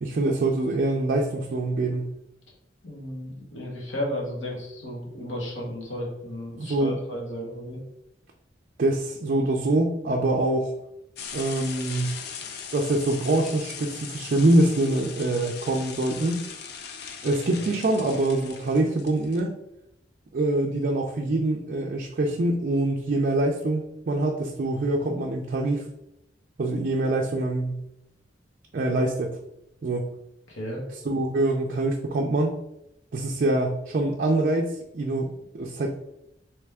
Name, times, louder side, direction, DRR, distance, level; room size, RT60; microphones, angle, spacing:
voice 1, 0.0-2.1 6.6-7.0 8.8-10.7 11.3-12.1 12.7-16.4 17.2-19.5 20.3-25.9 26.6-27.8 28.7-29.4 29.8-30.1 31.0-32.5 33.1-36.0, right 2 dB, 50° right, 0 dB, 0.4 m, -24 dB
voice 2, 2.8-7.8 30.5-30.8, left 1 dB, 85° left, -2 dB, 1.3 m, -34 dB
sound 1, 11.2-19.4, left 7 dB, 60° left, 0.4 m, -39 dB
3.3 x 3.1 x 3.4 m, 0.82 s
head